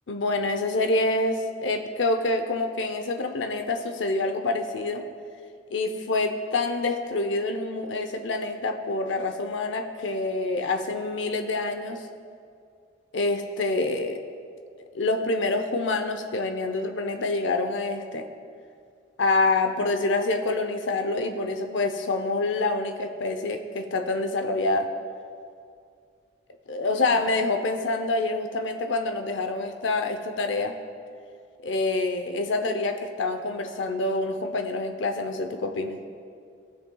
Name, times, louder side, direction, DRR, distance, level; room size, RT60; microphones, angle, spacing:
voice 1, 0.1-5.0 5.7-12.0 13.1-14.2 14.9-18.2 19.2-24.9 26.7-30.8 31.6-36.0, left 2 dB, 80° left, 6 dB, 0.6 m, -26 dB
17.5 x 6.6 x 2.3 m, 2.4 s
head